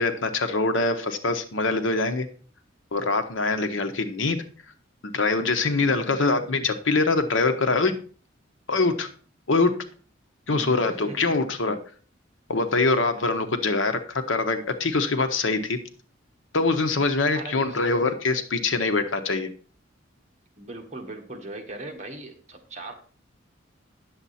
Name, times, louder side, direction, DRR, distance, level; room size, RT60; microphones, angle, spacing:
voice 1, 0.0-2.3 2.9-4.5 5.1-8.0 8.7-9.1 9.5-9.8 10.5-11.8 12.5-15.8 16.5-19.5, left 3 dB, 85° left, 8 dB, 1.0 m, -24 dB
voice 2, 5.8-6.6 10.5-11.2 17.3-17.8 20.6-22.9, right 2 dB, 35° right, 2 dB, 1.5 m, -40 dB
9.7 x 7.3 x 4.2 m, 0.41 s
head